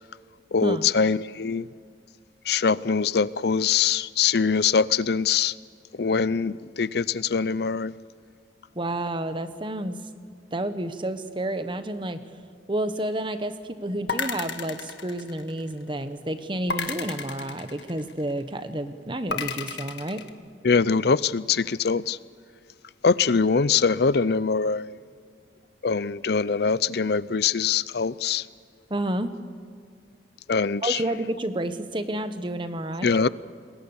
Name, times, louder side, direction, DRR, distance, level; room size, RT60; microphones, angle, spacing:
voice 1, 0.5-1.7 2.4-5.5 5.9-7.9 20.6-22.2 23.0-25.0 25.8-28.5 30.5-31.0 33.0-33.3, left 5 dB, 60° left, 0.5 m, -23 dB
voice 2, 8.8-10.0 10.5-12.2 12.7-20.2 28.9-29.4 30.8-33.1, right 1 dB, 25° right, 1.1 m, -30 dB
sound 1, 14.1-15.8 16.7-18.3 19.3-20.3, left 5 dB, 75° left, 1.5 m, -32 dB
27.5 x 21.0 x 7.2 m
head